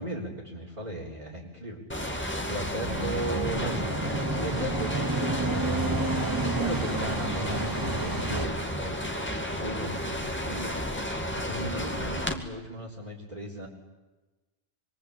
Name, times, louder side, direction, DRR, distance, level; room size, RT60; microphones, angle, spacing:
voice 1, 0.0-1.8 2.3-3.8 4.1-5.8 6.4-10.8 11.3-13.7, right 1 dB, 35° right, -7 dB, 4.2 m, -37 dB
sound 1, 1.9-12.3, left 1 dB, 10° left, 2.3 m, -32 dB
sound 2, 2.8-8.5, right 2 dB, 20° right, 1.2 m, -30 dB
26.0 x 22.5 x 8.7 m, 1.1 s
omnidirectional pair, 1.2 m